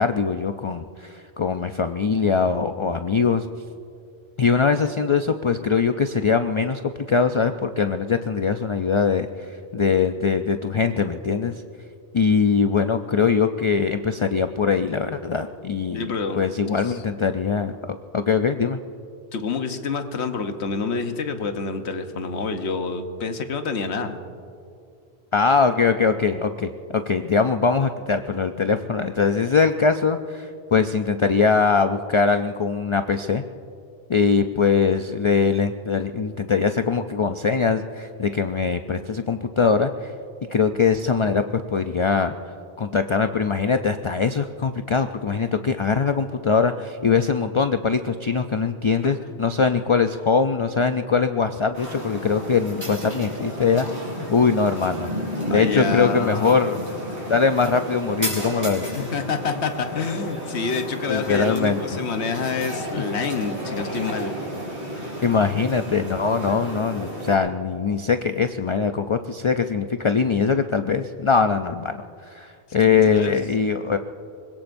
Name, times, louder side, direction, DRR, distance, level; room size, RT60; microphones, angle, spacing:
voice 1, 0.0-3.5 4.4-6.8 7.1-11.6 12.1-18.8 25.3-33.4 34.1-40.1 40.5-42.3 42.8-55.1 55.5-56.8 57.3-59.0 61.1-61.8 65.2-72.0 72.3-74.0, left 5 dB, 45° left, 8 dB, 0.4 m, -22 dB
voice 2, 15.9-16.4 16.7-17.0 19.3-24.2 49.0-49.1 55.5-56.5 58.8-64.3 73.1-73.4, left 5 dB, 90° left, 7 dB, 1.2 m, -28 dB
sound 1, 51.7-67.4, equal, 40° right, 5.2 m, -32 dB
24.5 x 21.0 x 2.6 m, 2.5 s
omnidirectional pair, 1.1 m